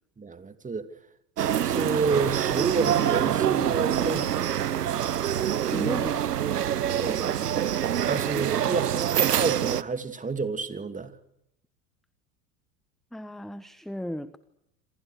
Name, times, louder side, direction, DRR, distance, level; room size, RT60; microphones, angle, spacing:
voice 1, 0.2-0.9 1.6-4.5 7.0-7.4 8.0-11.1, right 4 dB, 15° right, 2.8 m, -30 dB
sound 1, 1.4-9.8, right 10 dB, 85° right, 1.1 m, -25 dB
voice 2, 5.6-6.2 13.1-14.4, equal, ahead, 1.2 m, -35 dB
28.0 x 26.5 x 6.5 m
hypercardioid pair, 85°, 46 cm